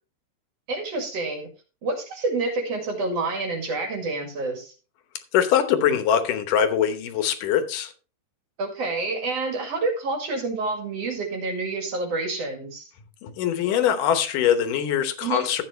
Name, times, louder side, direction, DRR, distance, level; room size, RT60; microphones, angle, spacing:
voice 1, 0.7-1.5 1.8-4.7 8.6-12.9 15.2-15.5, right 3 dB, 50° right, 3.1 m, -28 dB
voice 2, 5.3-7.9 13.2-15.6, left 9 dB, 80° left, 2.6 m, -22 dB
13.0 x 8.6 x 3.1 m
omnidirectional pair, 3.7 m